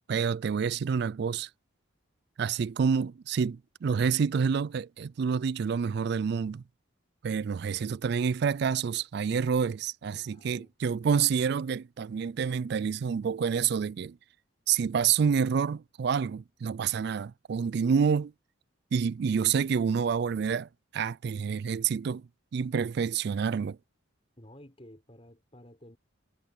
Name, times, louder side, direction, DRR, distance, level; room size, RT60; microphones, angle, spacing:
voice 1, 0.1-1.5 2.4-6.6 7.2-14.2 14.7-18.3 18.9-20.7 20.9-22.2 22.5-23.8, right 6 dB, 50° right, 0.3 m, -28 dB
voice 2, 10.1-10.7 24.4-26.0, left 1 dB, 30° left, 5.5 m, -52 dB
head